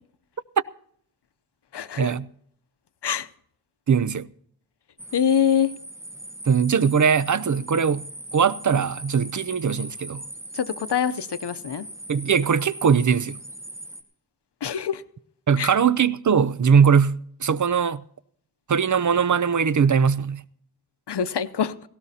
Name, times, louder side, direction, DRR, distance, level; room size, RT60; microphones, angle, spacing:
voice 1, 1.7-2.1 3.0-3.3 5.1-5.7 10.5-11.9 14.6-15.0 15.6-15.7 21.1-21.7, left 8 dB, 85° left, 0.7 m, -24 dB
voice 2, 3.9-4.3 6.5-8.1 8.3-10.2 12.1-13.4 15.5-18.0 18.7-20.4, right 6 dB, 50° right, 0.5 m, -20 dB
sound 1, 5.0-14.0, right 1 dB, 5° right, 1.4 m, -40 dB
18.0 x 17.0 x 2.8 m
wide cardioid pair, 75°, 39 cm